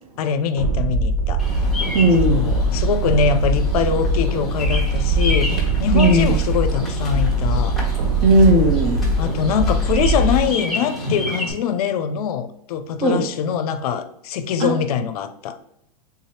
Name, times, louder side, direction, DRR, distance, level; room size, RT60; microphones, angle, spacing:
voice 1, 0.2-1.4 2.3-7.8 9.2-15.6, left 7 dB, 70° left, 11 dB, 0.5 m, -23 dB
sound 1, 0.6-10.5, right 1 dB, 85° right, 1.0 m, -21 dB
Bird vocalization bird call bird song, 1.4-11.5, left 1 dB, ahead, 1.2 m, -30 dB
voice 2, 1.9-2.5 5.9-6.3 8.2-9.1 13.0-13.2 14.6-14.8, right 1 dB, 30° right, 4 dB, 0.8 m, -16 dB
3.5 x 2.7 x 3.1 m, 0.80 s
hypercardioid pair, 130°, 20 cm